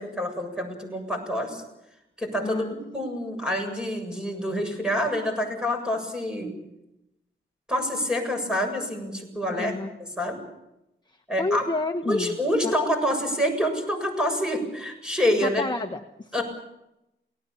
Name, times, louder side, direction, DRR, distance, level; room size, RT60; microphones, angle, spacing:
voice 1, 0.0-1.6 2.2-2.7 2.9-6.6 7.7-9.7 10.0-10.4 11.3-11.7 12.0-15.6 16.3-16.4, equal, 5° right, 4 dB, 7.5 m, -27 dB
voice 2, 2.4-2.7 9.5-9.9 11.4-12.4 12.6-12.7 15.4-16.4, left 2 dB, 20° left, 5 dB, 1.2 m, -29 dB
29.0 x 19.0 x 7.2 m, 0.90 s
wide cardioid pair, 105°, 20 cm